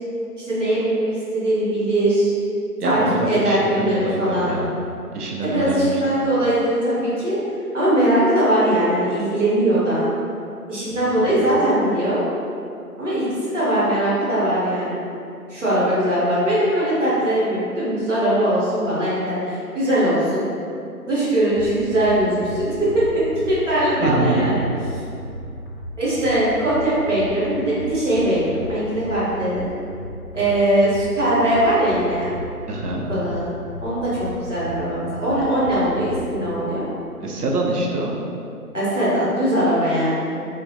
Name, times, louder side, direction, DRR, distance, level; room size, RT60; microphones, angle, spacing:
voice 1, 0.4-2.3 2.8-3.0 3.3-4.5 5.4-7.4 7.7-10.1 10.7-12.2 13.0-15.0 15.5-20.4 21.0-23.2 23.5-24.7 26.0-29.7 30.3-32.3 33.1-33.5 33.8-36.8 38.7-40.3, right 1 dB, 55° right, -9 dB, 0.8 m, -20 dB
voice 2, 2.8-4.7 5.1-6.0 11.0-11.5 24.0-24.6 32.7-33.1 37.2-38.1, right 2 dB, 80° right, -1 dB, 0.6 m, -25 dB
sound 1, 21.6-36.6, right 1 dB, 55° left, 0.5 m, -35 dB
2.4 x 2.0 x 2.6 m, 2.6 s
figure-of-eight pair, 165°, 46 cm